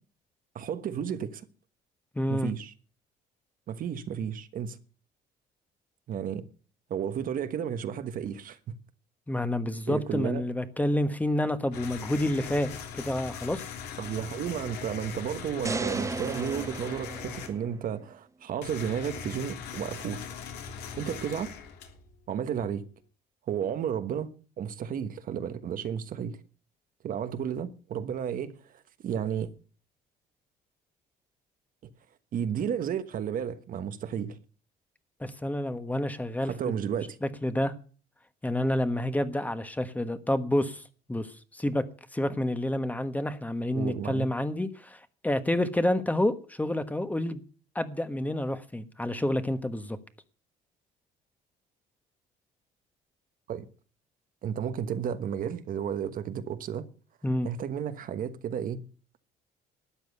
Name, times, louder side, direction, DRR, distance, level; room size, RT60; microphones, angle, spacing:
voice 1, 0.5-1.4 2.3-2.7 3.7-4.8 6.1-6.4 6.9-8.6 9.9-10.4 14.0-20.3 21.0-21.5 22.3-22.8 23.5-24.3 24.6-26.4 27.0-29.5 32.3-34.4 36.5-37.2 43.7-44.3 53.5-53.7 54.4-56.9 57.4-58.8, right 8 dB, 55° right, 1.3 m, -32 dB
voice 2, 2.1-2.5 9.3-13.6 35.2-36.5 37.2-37.7 38.4-40.8 41.1-41.8 42.1-47.4 47.7-50.0 57.2-57.5, left 1 dB, 10° left, 1.3 m, -29 dB
sound 1, 11.7-17.5 18.6-22.2, left 7 dB, 80° left, 3.1 m, -40 dB
sound 2, 15.6-17.9, right 4 dB, 20° right, 0.6 m, -35 dB
13.0 x 9.2 x 6.8 m
cardioid pair, 110°, 17 cm